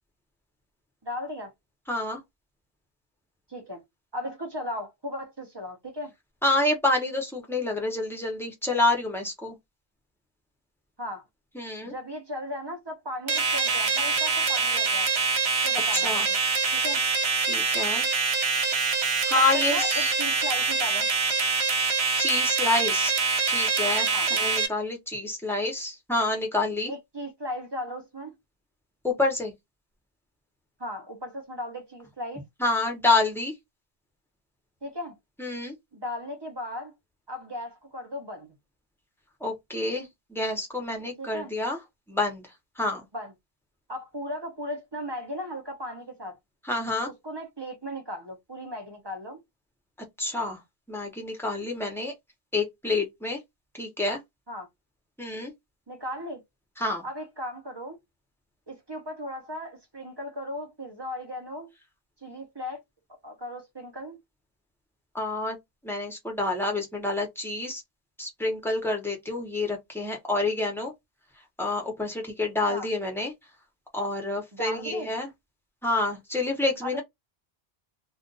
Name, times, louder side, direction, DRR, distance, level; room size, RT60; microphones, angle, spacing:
voice 1, 1.0-1.5 3.5-3.8 4.1-6.1 11.0-11.2 11.8-15.1 15.6-16.4 16.7-17.0 19.3-21.1 24.1-24.3 26.9-28.3 30.8-32.4 34.8-35.2 35.9-36.9 37.3-38.5 41.2-41.5 43.1-43.3 43.9-46.4 47.0-49.4 54.5-54.7 55.9-56.4 57.0-58.0 58.7-61.7 62.2-62.8 63.2-64.2 72.7-72.9 74.5-75.1 76.8-77.0, left 1 dB, 25° right, 0.7 m, -36 dB
voice 2, 1.9-2.2 6.4-9.6 11.5-11.9 15.9-16.3 17.5-18.1 19.3-20.1 22.2-23.1 23.5-26.9 29.0-29.5 32.6-33.5 35.4-35.7 39.4-41.8 42.1-42.5 42.8-43.0 46.6-47.1 50.2-50.6 50.9-52.1 52.5-53.4 53.7-54.2 55.2-55.5 56.8-57.0 65.1-65.6 65.8-67.8 68.2-70.9 71.6-73.3 73.9-75.3 75.8-77.0, left 2 dB, ahead, 0.8 m, -28 dB
sound 1, 13.3-24.7, right 4 dB, 75° right, 1.0 m, -25 dB
2.5 x 2.3 x 3.8 m
omnidirectional pair, 1.1 m